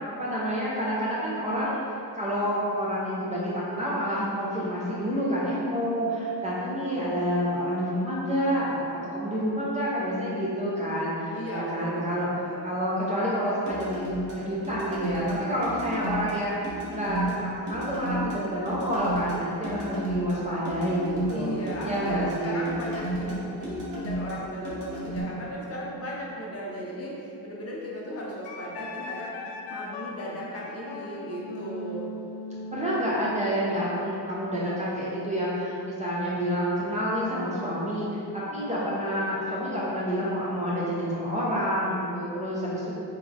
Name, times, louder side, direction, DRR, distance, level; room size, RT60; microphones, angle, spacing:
voice 1, 0.1-1.8 2.1-12.3 12.6-16.6 16.9-21.5 21.8-22.7 32.7-38.1 38.3-42.9, equal, 20° right, -8 dB, 0.4 m, -28 dB
voice 2, 11.3-12.2 12.4-12.7 21.3-29.3 29.7-32.1, equal, 35° left, -4 dB, 0.6 m, -36 dB
sound 1, 13.7-25.2, right 1 dB, 45° right, 1.0 m, -33 dB
Wind instrument woodwind instrument, 28.4-33.8, left 1 dB, 85° left, 0.5 m, -39 dB
3.6 x 3.3 x 3.5 m, 2.7 s
cardioid pair, 170°, 42 cm